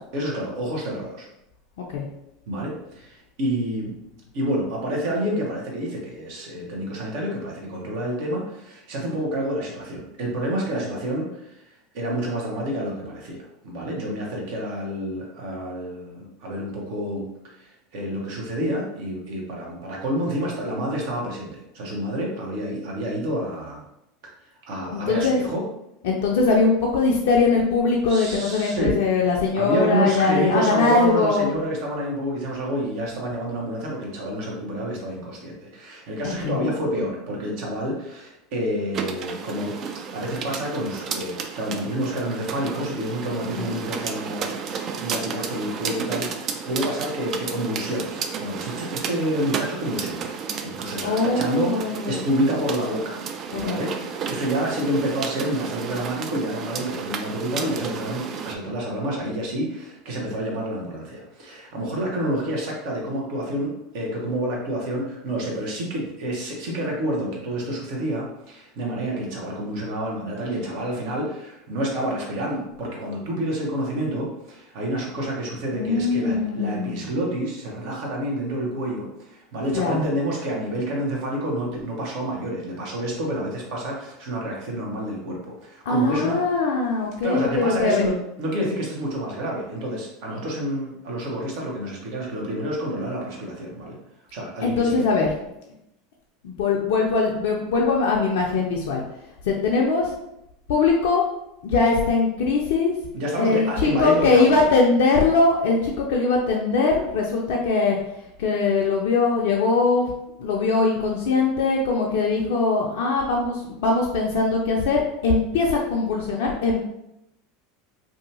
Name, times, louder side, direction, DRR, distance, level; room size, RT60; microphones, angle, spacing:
voice 1, 0.1-1.3 2.5-4.0 4.3-13.4 13.6-23.8 24.7-25.6 28.1-29.0 29.5-39.8 40.1-50.3 50.6-53.2 53.5-86.4 87.2-94.0 94.3-95.1 103.1-104.6, right 1 dB, 60° right, -2 dB, 0.9 m, -28 dB
voice 2, 24.9-25.4 26.0-31.5 36.2-36.7 43.6-43.7 51.0-52.2 53.6-53.9 75.7-77.0 79.7-80.0 85.9-88.0 94.6-95.3 96.4-99.0 99.4-100.1 100.7-101.2 101.6-102.9 103.4-108.0 108.4-110.1 110.4-116.8, left 4 dB, 65° left, -1 dB, 0.4 m, -21 dB
sound 1, 38.9-58.5, right 6 dB, 45° right, 0.3 m, -32 dB
2.7 x 2.3 x 2.7 m, 0.85 s
hypercardioid pair, 80°, 0 cm